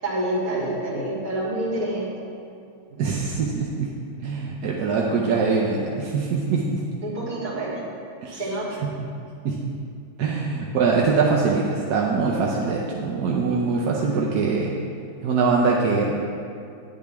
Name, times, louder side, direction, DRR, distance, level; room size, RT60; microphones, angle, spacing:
voice 1, 0.0-2.1 7.0-7.8 8.3-8.8, right 1 dB, 40° right, -8 dB, 3.2 m, -27 dB
voice 2, 3.0-3.9 4.2-6.8 8.2-8.4 9.4-9.6 10.2-14.8 15.2-16.1, right 4 dB, 60° right, -3 dB, 1.1 m, -23 dB
10.5 x 9.8 x 3.5 m, 2.5 s
omnidirectional pair, 2.3 m